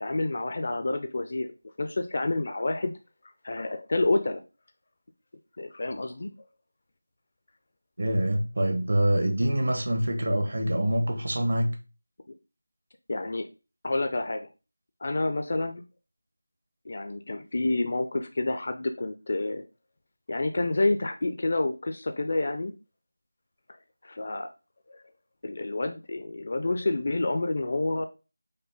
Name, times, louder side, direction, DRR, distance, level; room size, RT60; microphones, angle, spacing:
voice 1, 0.0-1.5 1.8-2.9 3.4-4.4 5.6-6.3 13.1-13.5 13.8-14.5 15.0-15.8 16.9-19.6 20.3-22.7 24.0-24.5 24.9-25.0 25.4-28.1, left 2 dB, 45° left, 0.4 m, -28 dB
voice 2, 8.0-11.8, right 1 dB, 65° right, 1.1 m, -25 dB
5.3 x 2.1 x 3.9 m
figure-of-eight pair, 170°, 0 cm